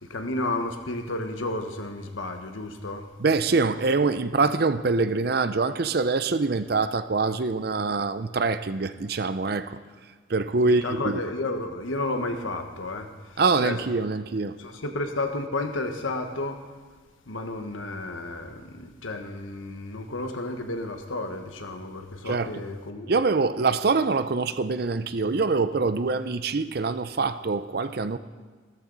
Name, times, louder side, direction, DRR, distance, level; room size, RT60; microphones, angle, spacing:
voice 1, 0.0-3.1 10.6-13.8 14.6-16.6 17.3-23.1, left 2 dB, 90° left, 5 dB, 1.3 m, -32 dB
voice 2, 3.2-9.8 10.3-11.2 13.4-14.6 22.2-22.5 23.1-28.2, right 3 dB, 50° right, 12 dB, 0.5 m, -24 dB
14.5 x 13.5 x 4.0 m, 1.5 s
head